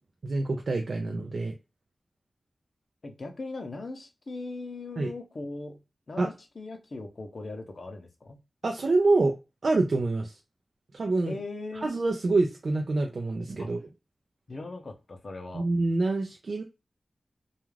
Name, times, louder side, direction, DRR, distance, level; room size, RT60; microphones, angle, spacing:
voice 1, 0.2-1.5 5.0-5.1 6.2-6.3 8.6-9.3 9.6-10.3 10.9-11.4 11.8-13.8 15.5-16.6, right 2 dB, 60° right, 2 dB, 0.4 m, -26 dB
voice 2, 3.0-5.8 6.1-8.4 11.3-11.9 13.6-13.7 14.5-15.6, left 3 dB, 50° left, 6 dB, 0.6 m, -39 dB
2.3 x 2.3 x 3.1 m, 0.27 s
wide cardioid pair, 120°, 0 cm